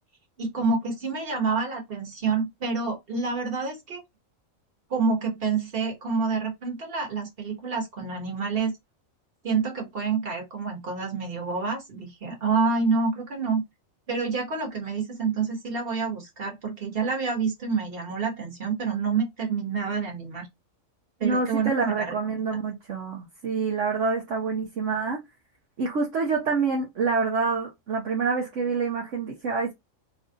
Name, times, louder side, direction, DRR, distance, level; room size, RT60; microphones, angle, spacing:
voice 1, 0.4-4.0 4.9-8.7 9.4-13.6 14.1-20.5 21.2-22.4, right 4 dB, 45° right, 1.7 m, -28 dB
voice 2, 21.2-25.2 25.8-29.7, right 4 dB, 65° right, 1.2 m, -27 dB
3.3 x 2.5 x 3.8 m
omnidirectional pair, 1.4 m